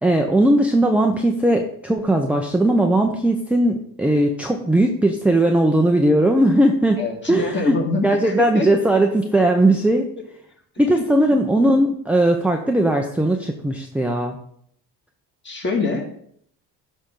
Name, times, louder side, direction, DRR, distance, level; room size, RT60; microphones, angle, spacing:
voice 1, 0.0-7.8 8.0-10.1 10.8-14.4, right 1 dB, 5° right, 2 dB, 0.7 m, -18 dB
voice 2, 7.0-8.7 10.9-11.0 15.4-16.1, left 3 dB, 30° left, 1 dB, 2.1 m, -25 dB
12.5 x 4.3 x 3.8 m, 0.65 s
cardioid pair, 95°, 39 cm